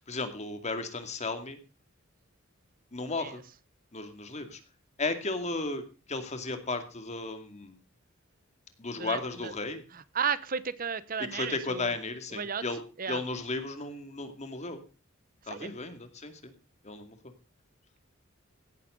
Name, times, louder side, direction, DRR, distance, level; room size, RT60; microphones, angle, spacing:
voice 1, 0.0-1.6 2.9-3.4 3.9-4.6 5.0-5.8 6.1-7.8 8.8-9.8 11.3-12.8 13.1-14.8 15.4-16.5 16.8-17.2, left 3 dB, 35° left, 2.3 m, -34 dB
voice 2, 9.0-9.5 9.9-11.9 12.3-12.6 13.0-13.2 15.5-15.7, right 6 dB, 40° right, 0.9 m, -34 dB
17.0 x 12.0 x 3.9 m
head